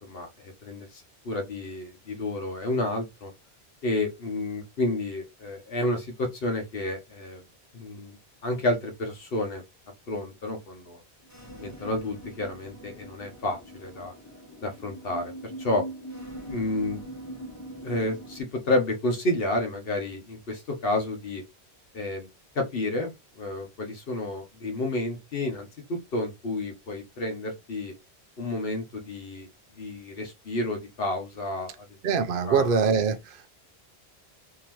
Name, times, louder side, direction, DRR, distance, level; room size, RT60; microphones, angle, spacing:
voice 1, 0.0-3.3 3.8-7.4 7.7-8.2 8.4-9.6 10.1-11.0 11.5-14.1 14.6-15.8 16.5-17.0 17.8-21.4 21.9-22.3 22.5-23.1 23.4-27.9 28.4-29.5 29.8-31.9 32.5-32.8, left 2 dB, 65° left, 1.0 m, -30 dB
sound 1, 11.2-18.4, right 1 dB, 15° left, 0.8 m, -42 dB
voice 2, 32.0-33.5, right 6 dB, 60° right, 0.7 m, -24 dB
3.7 x 2.8 x 2.9 m
omnidirectional pair, 1.1 m